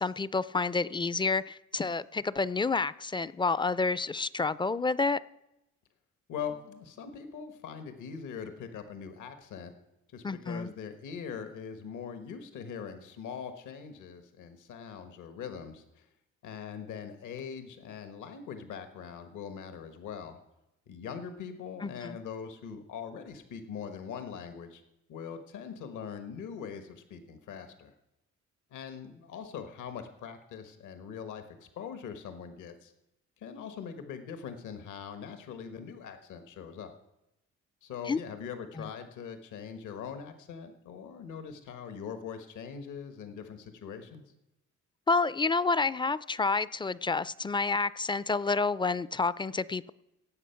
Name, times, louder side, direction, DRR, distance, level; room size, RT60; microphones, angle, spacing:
voice 1, 0.0-5.2 10.2-10.7 21.8-22.2 38.1-38.2 45.1-49.9, left 4 dB, 15° left, 0.3 m, -29 dB
voice 2, 6.3-9.7 10.1-16.1 16.4-20.4 20.9-24.8 25.1-27.9 28.7-31.4 31.8-32.9 33.4-36.9 37.8-44.2, left 7 dB, 80° left, 1.3 m, -42 dB
17.5 x 8.0 x 5.8 m
cardioid pair, 90°, 30 cm